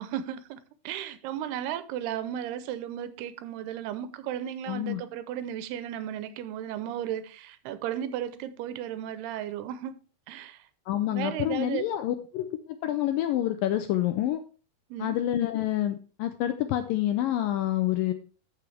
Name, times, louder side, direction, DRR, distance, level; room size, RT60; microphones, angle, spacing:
voice 1, 0.0-10.0 10.3-10.7 11.1-11.8 14.9-15.2, right 10 dB, 85° right, 2.7 m, -35 dB
voice 2, 4.7-5.0 10.9-14.4 15.0-18.1, left 13 dB, 80° left, 2.0 m, -28 dB
13.5 x 6.2 x 3.3 m
omnidirectional pair, 4.6 m